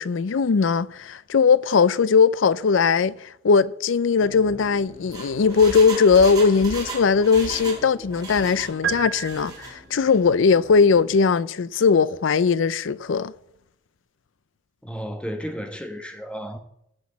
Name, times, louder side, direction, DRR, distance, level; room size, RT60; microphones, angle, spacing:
voice 1, 0.0-13.3, left 5 dB, 85° left, 0.5 m, -19 dB
sound 1, 4.2-11.1, equal, 25° left, 2.8 m, -45 dB
Engine, 4.9-7.9 8.1-8.7 9.2-9.7 10.1-10.2, right 3 dB, 20° right, 4.1 m, -35 dB
sound 2, 8.8-10.1, right 9 dB, 75° right, 1.1 m, -31 dB
voice 2, 14.8-16.6, equal, 5° left, 1.3 m, -33 dB
16.0 x 6.1 x 8.5 m
head